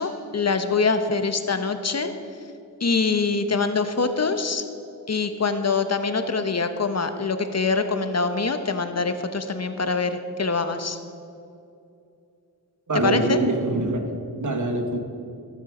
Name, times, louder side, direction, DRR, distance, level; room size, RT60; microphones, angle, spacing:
voice 1, 0.0-2.1 2.8-4.6 5.1-11.0 13.0-13.4, left 4 dB, 45° left, 9 dB, 0.9 m, -24 dB
voice 2, 12.9-14.1 14.4-15.0, right 2 dB, 55° right, 5 dB, 1.5 m, -24 dB
16.5 x 7.3 x 4.9 m, 2.6 s
cardioid pair, 60°, 36 cm